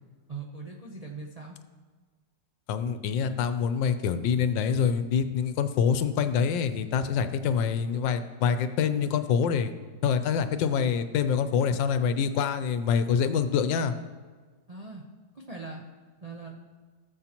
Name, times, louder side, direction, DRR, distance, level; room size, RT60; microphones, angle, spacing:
voice 1, 0.3-1.6 14.7-15.0 15.3-15.8 16.2-16.6, right 4 dB, 55° right, -1 dB, 0.4 m, -40 dB
voice 2, 2.7-9.7 10.0-13.9, left 7 dB, 85° left, 10 dB, 1.4 m, -26 dB
17.5 x 7.1 x 2.9 m, 1.4 s
omnidirectional pair, 2.0 m